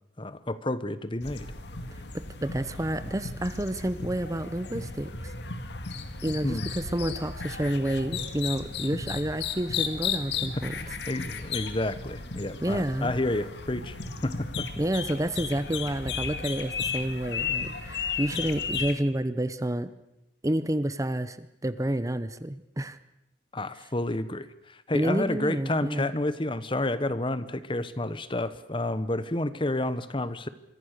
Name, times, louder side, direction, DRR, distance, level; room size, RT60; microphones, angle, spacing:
voice 1, 0.2-1.5 6.4-6.6 10.5-14.0 14.2-14.7 23.5-30.5, left 1 dB, 30° left, 14 dB, 1.1 m, -30 dB
sound 1, 1.2-19.0, left 5 dB, 70° left, 2.0 m, -35 dB
voice 2, 2.1-5.3 6.2-10.8 12.6-13.1 14.8-19.9 20.4-23.0 24.9-26.1, right 1 dB, 20° right, 13 dB, 0.9 m, -29 dB
26.5 x 23.5 x 6.7 m, 0.83 s
head